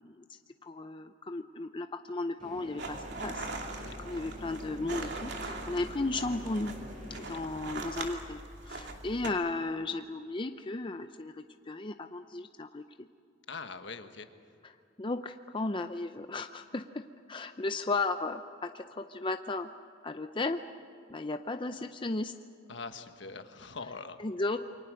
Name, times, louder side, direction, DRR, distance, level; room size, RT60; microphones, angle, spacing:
voice 1, 0.0-6.7 7.2-8.4 8.7-13.1 14.6-14.7 15.0-17.0 17.3-19.7 20.0-20.6 21.1-22.3 24.2-24.6, left 2 dB, 25° left, 8 dB, 0.6 m, -35 dB
sound 1, 2.4-7.4, left 1 dB, 40° right, 6.7 m, -47 dB
sound 2, 2.8-9.3, right 2 dB, 60° right, 2.6 m, -41 dB
voice 2, 13.5-14.3 22.7-24.2, left 4 dB, 65° left, 8 dB, 1.4 m, -43 dB
28.0 x 24.0 x 6.4 m, 2.5 s
head